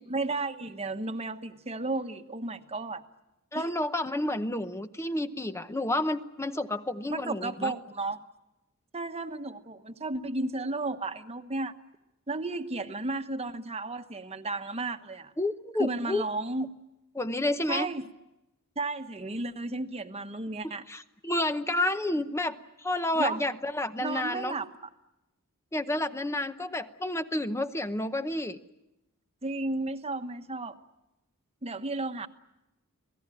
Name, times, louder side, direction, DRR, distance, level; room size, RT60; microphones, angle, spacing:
voice 1, 0.1-3.0 3.5-3.7 7.1-8.2 8.9-11.8 12.3-15.3 15.8-16.7 17.7-18.1 18.8-20.9 23.1-23.4 24.0-24.7 29.4-30.8 31.6-32.3, right 2 dB, 30° right, 8 dB, 1.2 m, -33 dB
voice 2, 3.5-7.7 15.4-16.2 17.1-17.9 20.9-24.5 25.7-28.6, left 1 dB, 10° left, 10 dB, 0.8 m, -30 dB
27.0 x 18.0 x 10.0 m, 0.93 s
head